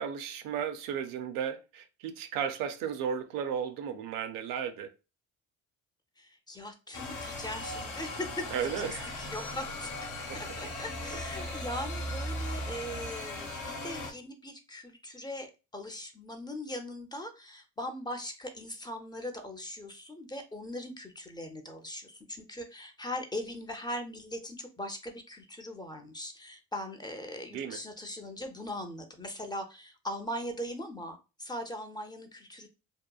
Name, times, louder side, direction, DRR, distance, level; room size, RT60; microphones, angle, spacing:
voice 1, 0.0-4.9 8.5-9.2 10.2-10.4 11.1-11.6 27.5-27.8, right 8 dB, 80° right, 0.5 m, -35 dB
voice 2, 6.2-8.4 8.8-8.9 9.2-9.9 10.3-13.5 13.8-32.7, left 1 dB, 15° left, 0.5 m, -40 dB
sound 1, 6.9-14.1, left 1 dB, 65° left, 0.8 m, -38 dB
2.8 x 2.2 x 2.2 m
supercardioid pair, 70°, 33 cm